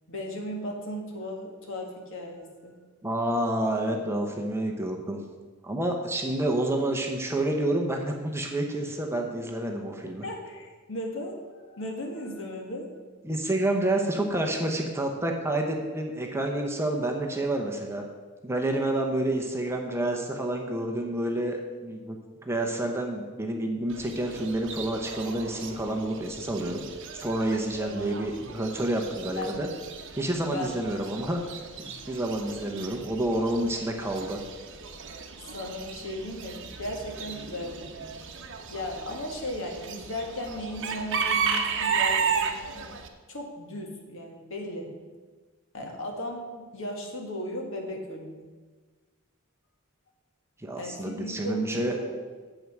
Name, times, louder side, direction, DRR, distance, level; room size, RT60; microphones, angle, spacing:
voice 1, 0.1-2.8 10.0-12.9 27.7-28.0 29.4-29.7 30.4-31.3 35.5-38.1 38.7-42.9 43.3-44.9 45.7-48.5 50.8-52.2, left 1 dB, 60° left, 1 dB, 1.9 m, -36 dB
voice 2, 3.0-5.2 5.6-10.2 13.2-18.0 18.4-22.2 22.4-26.8 27.1-29.7 30.1-31.4 31.8-34.4 50.6-52.0, right 1 dB, 10° right, 2 dB, 0.9 m, -29 dB
Chicken rooster / Bird, 23.9-43.1, right 6 dB, 55° right, 1.0 m, -34 dB
8.8 x 7.8 x 6.0 m, 1.4 s
head